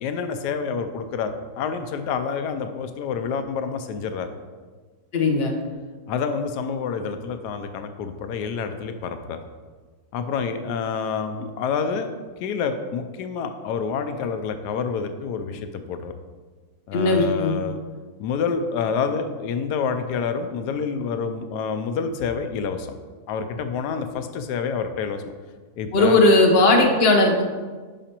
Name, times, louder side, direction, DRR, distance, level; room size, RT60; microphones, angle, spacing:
voice 1, 0.0-4.3 6.1-9.4 10.1-12.1 12.4-16.1 16.9-17.8 18.2-22.9 23.3-25.2 25.8-26.2, left 6 dB, 90° left, 8 dB, 1.2 m, -28 dB
voice 2, 5.1-5.5 16.9-17.5 25.9-27.4, left 2 dB, 45° left, 2 dB, 1.1 m, -17 dB
10.5 x 4.9 x 2.9 m, 1.4 s
omnidirectional pair, 1.7 m